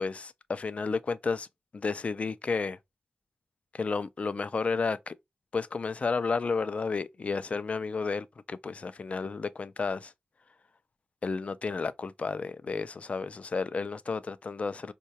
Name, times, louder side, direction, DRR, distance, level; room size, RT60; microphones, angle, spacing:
voice 1, 0.0-1.5 1.7-2.8 3.7-5.2 5.5-10.1 11.2-14.9, left 4 dB, 45° left, 0.3 m, -32 dB
4.6 x 2.2 x 2.7 m
wide cardioid pair, 95°, 3 cm